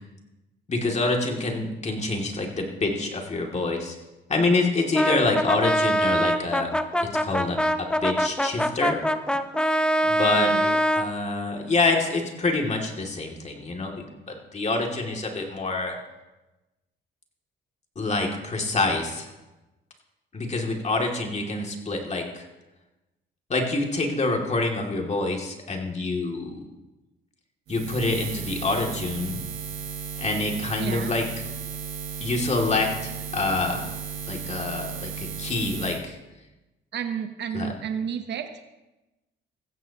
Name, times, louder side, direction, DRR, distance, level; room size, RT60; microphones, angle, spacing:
voice 1, 0.7-4.0 4.3-6.7 7.0-9.0 10.0-10.5 10.9-16.0 18.0-19.3 20.3-22.5 23.5-26.6 27.7-29.4 30.2-31.2 32.2-33.8 34.3-36.2 37.5-37.7, left 3 dB, 35° left, 1 dB, 2.6 m, -26 dB
Brass instrument, 4.9-11.1, equal, 5° left, 0.7 m, -24 dB
voice 2, 10.4-10.8 30.8-31.1 36.9-38.5, right 8 dB, 60° right, 7 dB, 1.1 m, -31 dB
Buzz, 27.7-36.0, right 7 dB, 90° right, 1.7 m, -35 dB
16.0 x 15.0 x 3.0 m, 1.0 s
cardioid pair, 90°, 20 cm